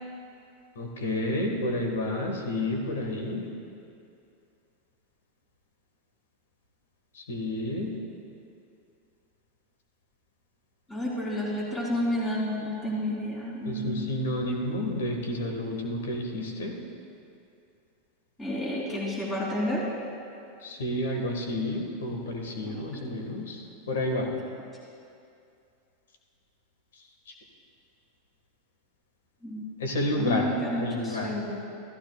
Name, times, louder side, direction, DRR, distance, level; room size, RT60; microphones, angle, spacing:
voice 1, 0.7-3.5 7.1-8.0 13.6-16.8 20.6-24.3 26.9-27.3 29.8-30.5 30.8-31.3, left 1 dB, 85° left, 2 dB, 1.5 m, -30 dB
voice 2, 10.9-14.2 18.4-19.9 22.7-23.1 29.4-29.7 30.2-31.5, left 1 dB, 15° left, -5 dB, 3.0 m, -31 dB
14.5 x 14.0 x 2.3 m, 2.5 s
hypercardioid pair, 110°, 0 cm